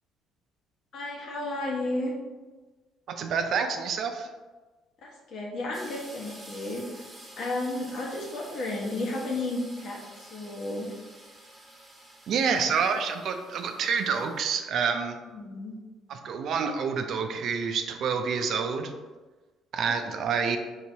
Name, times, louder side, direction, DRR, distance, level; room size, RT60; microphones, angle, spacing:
voice 1, 0.9-2.1 5.0-7.0 7.4-10.9 12.5-12.6 15.3-15.8 19.8-20.0, left 2 dB, 60° left, -2 dB, 1.2 m, -33 dB
voice 2, 3.1-4.3 12.3-15.2 16.1-18.9 19.7-20.6, right 6 dB, 60° right, 6 dB, 0.5 m, -28 dB
sound 1, 5.7-14.4, right 1 dB, 15° right, 1.2 m, -49 dB
4.5 x 4.0 x 2.8 m, 1.3 s
cardioid pair, 100°, 0 cm